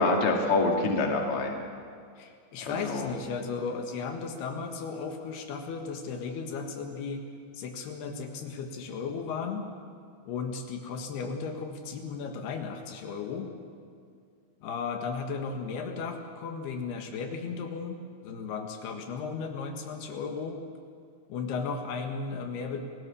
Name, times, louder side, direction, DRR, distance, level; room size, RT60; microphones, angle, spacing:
voice 1, 0.0-1.5 2.7-3.1, left 3 dB, 40° left, 1 dB, 2.8 m, -26 dB
voice 2, 2.2-7.2 7.5-9.7 10.3-13.5 14.6-20.6 21.3-22.8, left 5 dB, 80° left, 4 dB, 3.6 m, -35 dB
29.5 x 17.5 x 7.0 m, 2.2 s
omnidirectional pair, 4.6 m